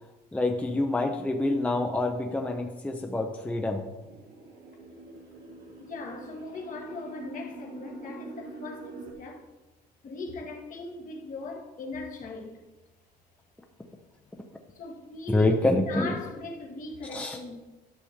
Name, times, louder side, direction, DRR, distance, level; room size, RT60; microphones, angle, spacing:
voice 1, 0.3-3.8 15.3-16.1 17.1-17.4, left 2 dB, 10° left, 0.6 m, -26 dB
sound 1, 4.0-9.1, right 3 dB, 75° right, 1.6 m, -45 dB
voice 2, 5.8-9.4 10.0-12.6 14.7-17.6, left 2 dB, 50° left, 1.5 m, -39 dB
11.5 x 6.1 x 2.9 m
cardioid pair, 110°, 17 cm